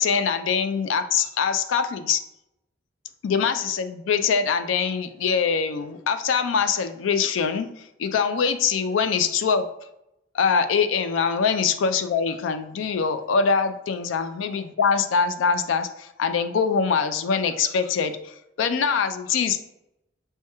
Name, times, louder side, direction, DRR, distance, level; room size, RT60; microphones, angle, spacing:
voice 1, 0.0-2.2 3.2-7.7 8.0-9.6 10.3-19.6, left 6 dB, 80° left, 9 dB, 0.4 m, -23 dB
4.6 x 2.2 x 2.8 m, 0.84 s
head